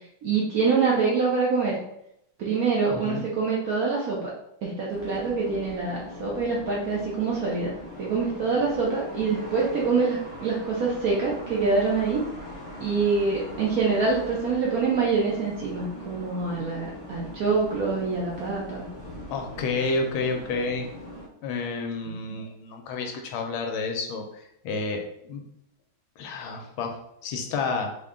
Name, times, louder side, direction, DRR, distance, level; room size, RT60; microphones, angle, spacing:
voice 1, 0.2-1.8 2.4-4.3 4.6-12.2 12.8-18.8 22.1-22.2, right 4 dB, 75° right, -4 dB, 0.8 m, -25 dB
voice 2, 2.9-3.2 19.3-20.9 21.4-25.0 25.3-25.4 26.2-27.0 27.2-27.9, left 3 dB, 80° left, 3 dB, 1.4 m, -30 dB
sound 1, 4.9-21.3, left 1 dB, 25° left, 0.7 m, -41 dB
3.8 x 2.2 x 3.5 m, 0.77 s
omnidirectional pair, 2.4 m